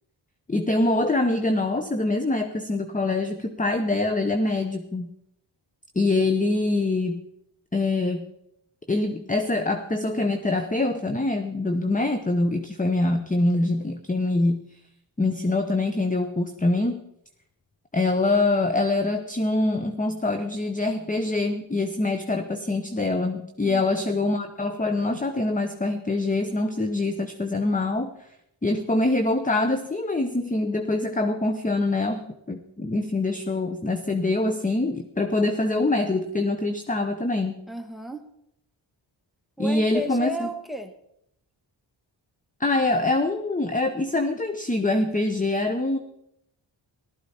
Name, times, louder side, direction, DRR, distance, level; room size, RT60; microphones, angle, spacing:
voice 1, 0.5-5.1 5.9-7.2 7.7-8.2 8.9-14.6 15.2-17.0 17.9-28.1 28.6-37.6 39.6-40.5 42.6-46.0, left 2 dB, 15° left, 8 dB, 0.9 m, -24 dB
voice 2, 37.7-38.2 39.6-40.9, equal, ahead, 7 dB, 1.5 m, -33 dB
15.0 x 13.0 x 4.3 m, 0.76 s
cardioid pair, 65°, 48 cm